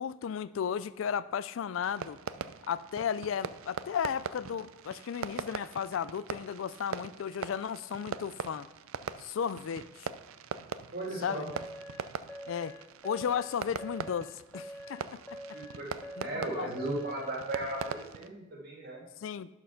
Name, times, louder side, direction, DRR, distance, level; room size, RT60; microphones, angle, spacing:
voice 1, 0.0-2.2 2.7-8.7 9.2-10.1 11.2-11.4 12.5-12.8 13.0-15.6 16.2-16.3 16.5-16.7 19.2-19.5, left 7 dB, 70° left, 0.3 m, -34 dB
Fireworks, 1.8-18.3, right 6 dB, 80° right, 0.4 m, -42 dB
voice 2, 10.9-11.5 15.5-19.0, right 2 dB, 50° right, 2.3 m, -36 dB
sound 1, 11.5-18.1, equal, 10° left, 0.5 m, -45 dB
11.0 x 4.6 x 5.7 m
head